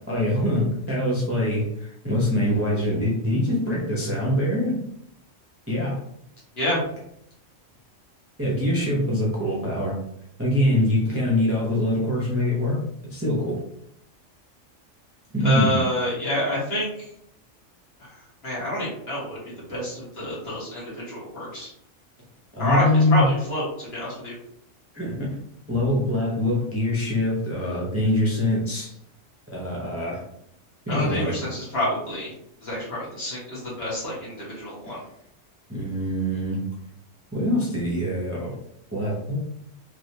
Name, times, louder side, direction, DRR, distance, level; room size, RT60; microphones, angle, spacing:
voice 1, 0.1-4.8 5.7-6.0 8.4-10.0 10.4-13.6 15.3-15.8 22.5-23.3 24.9-25.3 25.7-28.9 29.5-30.2 30.9-31.4 34.9-35.0 35.7-36.6 37.3-38.5 38.9-39.4, left 1 dB, 15° right, -5 dB, 0.5 m, -24 dB
voice 2, 15.4-17.1 18.0-18.1 18.4-19.4 19.7-21.7 22.6-22.8 23.1-24.4 30.9-32.3 32.6-35.0, left 1 dB, 55° left, -7 dB, 1.7 m, -28 dB
3.2 x 2.8 x 2.7 m, 0.74 s
omnidirectional pair, 1.3 m